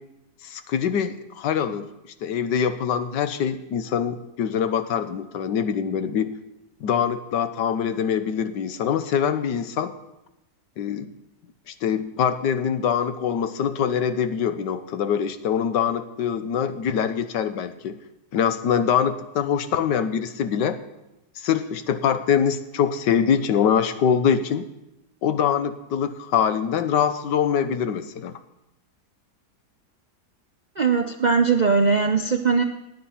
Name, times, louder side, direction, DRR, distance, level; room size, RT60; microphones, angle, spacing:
voice 1, 0.4-1.9 2.2-6.4 6.8-9.9 10.8-11.1 11.7-18.0 18.3-20.8 21.4-24.7 25.2-28.3, left 8 dB, 85° left, 11 dB, 1.5 m, -24 dB
voice 2, 30.8-32.6, right 5 dB, 60° right, 5 dB, 0.4 m, -20 dB
17.0 x 9.6 x 5.7 m, 0.92 s
omnidirectional pair, 1.8 m